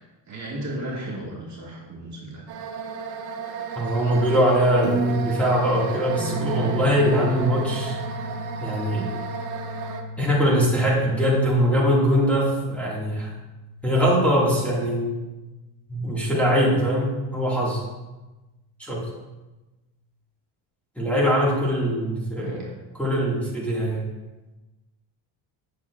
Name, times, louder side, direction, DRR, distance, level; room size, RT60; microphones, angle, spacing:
voice 1, 0.3-2.5 22.4-22.7, right 1 dB, 35° right, -4 dB, 1.8 m, -34 dB
sound 1, 2.5-10.0, right 5 dB, 50° right, 0.8 m, -33 dB
voice 2, 3.8-8.0 8.6-9.1 10.2-13.3 13.8-15.2 15.9-17.8 18.8-19.0 21.0-22.7 22.9-24.1, equal, 5° left, -7 dB, 1.8 m, -22 dB
Piano, 4.8-7.0, right 2 dB, 70° right, 1.7 m, -31 dB
sound 2, 6.2-15.3 16.7-17.3, equal, 20° right, 1.0 m, -35 dB
7.6 x 7.1 x 2.4 m, 1.1 s
cardioid pair, 115°, 47 cm